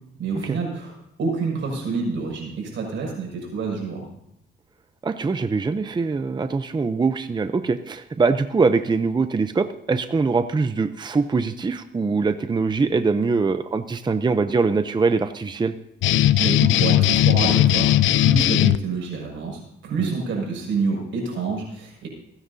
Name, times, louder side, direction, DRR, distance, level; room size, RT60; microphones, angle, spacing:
voice 1, 0.2-0.9 1.2-4.1 16.4-17.9 18.1-22.1, right 4 dB, 75° right, -1 dB, 6.2 m, -28 dB
voice 2, 5.0-15.8 20.0-20.1, right 4 dB, 20° right, 10 dB, 0.6 m, -23 dB
sound 1, 16.0-18.8, left 13 dB, 75° left, 0.5 m, -18 dB
28.0 x 9.9 x 2.8 m, 0.79 s
cardioid pair, 90°, 20 cm